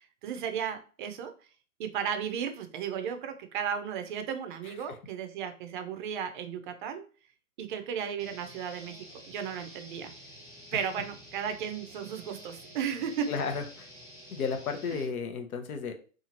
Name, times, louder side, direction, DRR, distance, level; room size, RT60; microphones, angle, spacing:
voice 1, 0.0-1.3 1.8-7.0 7.6-10.1 10.7-13.3, right 8 dB, 35° right, 7 dB, 0.4 m, -35 dB
voice 2, 4.6-5.0 10.7-10.8 13.3-13.9 14.3-15.9, left 5 dB, 75° left, 6 dB, 0.8 m, -34 dB
sound 1, 8.2-15.0, equal, 10° left, 1.1 m, -50 dB
2.7 x 2.4 x 2.8 m, 0.39 s
hypercardioid pair, 125°, 44 cm